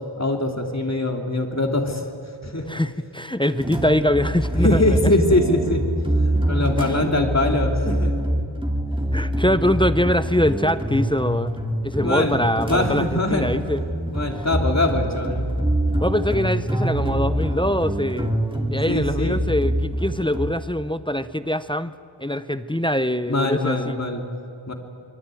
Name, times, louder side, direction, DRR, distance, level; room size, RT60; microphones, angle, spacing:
voice 1, 0.2-2.0 2.4-2.7 4.6-5.8 6.2-8.2 12.0-12.4 12.6-13.5 14.1-15.5 18.9-19.4 23.3-24.2 24.7-24.8, left 2 dB, 35° left, 3 dB, 3.1 m, -22 dB
voice 2, 2.7-5.1 9.1-11.6 11.8-13.8 16.0-18.3 18.7-21.9 22.2-24.0, left 1 dB, 10° left, 12 dB, 0.7 m, -23 dB
sound 1, 3.6-20.5, right 1 dB, 10° right, 2.8 m, -25 dB
25.0 x 22.5 x 9.2 m, 2.5 s
wide cardioid pair, 65°, 49 cm